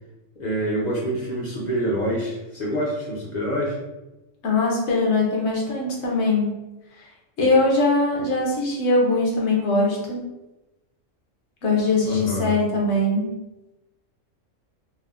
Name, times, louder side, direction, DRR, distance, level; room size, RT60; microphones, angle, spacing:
voice 1, 0.4-3.8 12.0-12.5, equal, 50° left, -4 dB, 0.6 m, -26 dB
voice 2, 4.4-6.5 7.4-10.2 11.6-13.3, left 2 dB, 65° left, -2 dB, 1.0 m, -21 dB
3.3 x 2.0 x 2.4 m, 1.0 s
omnidirectional pair, 1.3 m